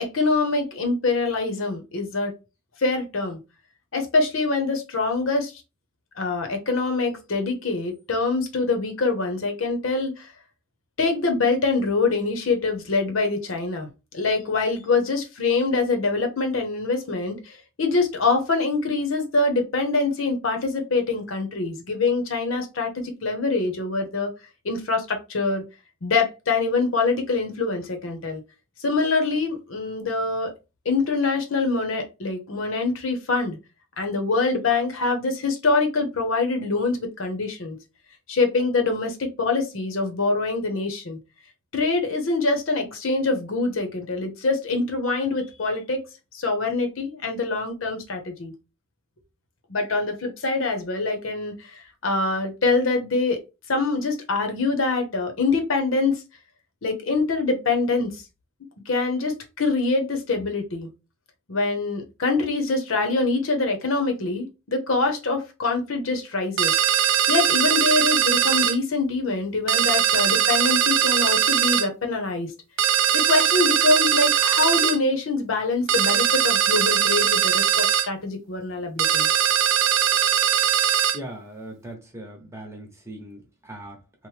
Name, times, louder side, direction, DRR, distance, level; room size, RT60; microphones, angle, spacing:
voice 1, 0.0-2.3 2.8-3.4 3.9-5.5 6.2-10.3 11.0-13.9 14.1-24.3 24.6-25.6 26.0-28.4 28.8-30.5 30.8-33.6 34.0-37.8 38.3-41.2 41.7-46.0 46.3-48.5 49.7-53.4 53.7-56.2 56.8-58.1 58.9-60.9 61.5-66.7 67.3-72.5 73.1-79.3, left 3 dB, 90° left, 0.8 m, -24 dB
sound 1, 66.6-68.8 69.7-71.9 72.8-75.0 75.9-78.1 79.0-81.2, right 10 dB, 75° right, 0.4 m, -20 dB
voice 2, 81.1-84.3, right 1 dB, 15° right, 0.8 m, -40 dB
3.0 x 2.1 x 3.1 m
head